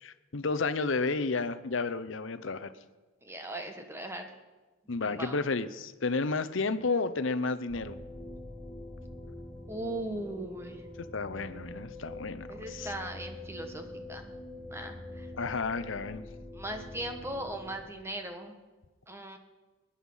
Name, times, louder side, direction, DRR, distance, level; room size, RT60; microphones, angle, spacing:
voice 1, 0.0-2.7 4.9-8.0 11.1-12.9 15.3-16.2, left 4 dB, 60° left, 12 dB, 0.8 m, -31 dB
voice 2, 3.2-4.3 5.0-5.4 9.7-10.8 12.5-14.3 14.7-15.3 16.5-18.5 19.1-19.4, right 1 dB, 10° right, 5 dB, 1.3 m, -38 dB
sound 1, 7.7-17.8, left 1 dB, 15° left, 3.7 m, -45 dB
20.5 x 10.0 x 5.6 m, 1.2 s
head